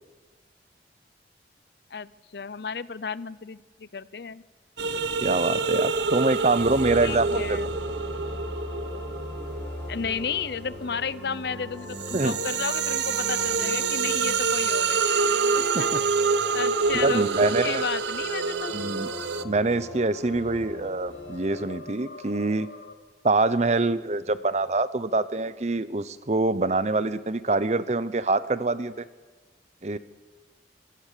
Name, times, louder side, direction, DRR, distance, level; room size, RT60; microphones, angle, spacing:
voice 1, 1.9-4.4 7.0-7.7 9.9-15.0 15.5-16.0 16.5-18.7, left 6 dB, 60° left, 18 dB, 0.6 m, -33 dB
sound 1, 4.8-11.1 11.6-19.4, right 5 dB, 75° right, 0.8 m, -27 dB
voice 2, 5.2-7.6 12.1-12.3 15.7-15.8 16.9-17.8 18.7-19.1 19.4-22.7 23.2-29.1 29.8-30.0, right 3 dB, 40° right, 15 dB, 0.7 m, -25 dB
sound 2, 6.6-22.9, left 3 dB, 80° left, 2.6 m, -46 dB
sound 3, 6.6-21.7, left 1 dB, 10° left, 6.5 m, -40 dB
25.5 x 16.5 x 6.7 m, 1.3 s
head